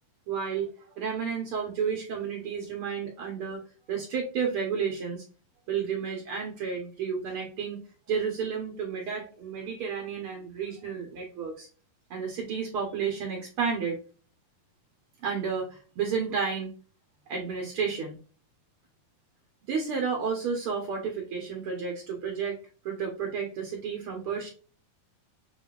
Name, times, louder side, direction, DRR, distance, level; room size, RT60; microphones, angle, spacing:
voice 1, 0.3-3.6 3.9-5.2 5.7-7.8 8.1-11.7 12.1-14.0 15.2-16.7 17.3-18.2 19.7-22.6 22.8-24.5, right 6 dB, 85° right, 0 dB, 1.2 m, -31 dB
7.3 x 2.4 x 2.4 m, 0.37 s
omnidirectional pair, 4.0 m